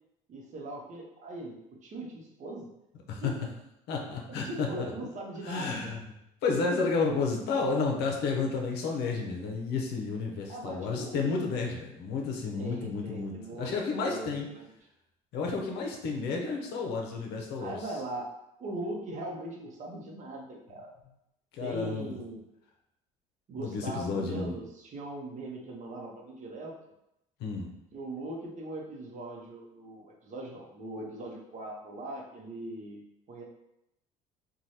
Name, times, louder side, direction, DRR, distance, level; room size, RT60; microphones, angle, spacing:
voice 1, 0.3-1.6 1.8-2.7 3.2-3.3 4.3-6.0 10.5-11.4 12.5-14.7 17.6-18.3 18.6-20.9 21.6-22.4 23.5-26.8 27.9-33.0 33.3-33.4, right 1 dB, 45° right, -1 dB, 0.8 m, -40 dB
voice 2, 3.9-4.7 5.4-6.0 6.4-14.5 15.3-17.8 21.5-22.1 23.6-24.6 27.4-27.7, left 4 dB, 70° left, 0 dB, 0.6 m, -31 dB
3.1 x 2.2 x 2.7 m, 0.84 s
supercardioid pair, 80°, 18 cm